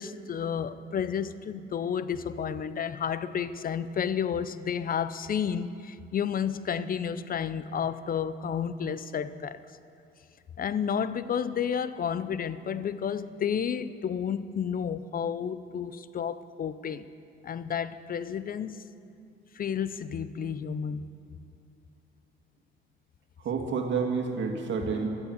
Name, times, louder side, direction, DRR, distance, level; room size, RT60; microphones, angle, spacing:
voice 1, 0.0-9.6 10.6-17.1 17.4-18.9 19.5-21.1, left 7 dB, 45° left, 0.6 m, -31 dB
voice 2, 23.4-25.1, right 5 dB, 70° right, 2.2 m, -29 dB
14.5 x 12.0 x 8.1 m
cardioid pair, 90°, 20 cm